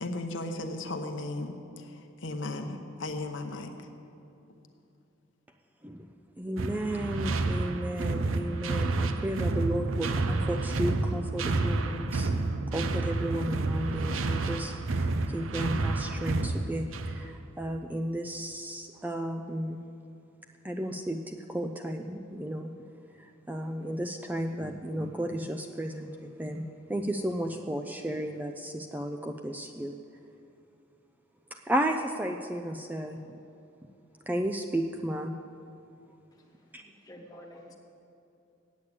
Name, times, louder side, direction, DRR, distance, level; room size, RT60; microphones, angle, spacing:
voice 1, 0.0-3.9, left 2 dB, 65° left, 5 dB, 0.8 m, -36 dB
voice 2, 6.4-12.3 12.7-15.1 15.3-19.8 20.6-22.7 23.5-26.1 26.4-26.6 26.9-29.9 31.7-33.2 34.3-35.3 36.7-36.8, right 1 dB, 10° right, 4 dB, 0.3 m, -33 dB
sound 1, 6.6-17.3, right 3 dB, 80° right, 0.6 m, -30 dB
voice 3, 36.7-37.7, equal, 20° left, -1 dB, 1.1 m, -49 dB
8.5 x 8.3 x 8.4 m, 2.7 s
head